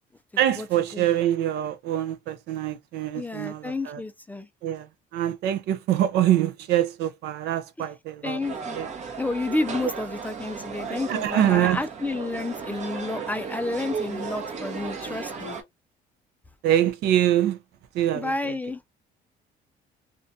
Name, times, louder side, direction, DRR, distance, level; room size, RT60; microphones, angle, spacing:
voice 1, 0.4-4.0 4.6-8.4 8.7-8.9 11.1-11.8 16.6-17.6 17.9-18.6, right 12 dB, 75° right, 0.5 m, -24 dB
voice 2, 3.1-4.5 8.2-15.6 18.1-18.8, left 2 dB, 10° left, 0.3 m, -30 dB
sound 1, 8.4-15.6, right 5 dB, 45° right, 0.8 m, -35 dB
2.4 x 2.2 x 2.6 m
cardioid pair, 110°, 17 cm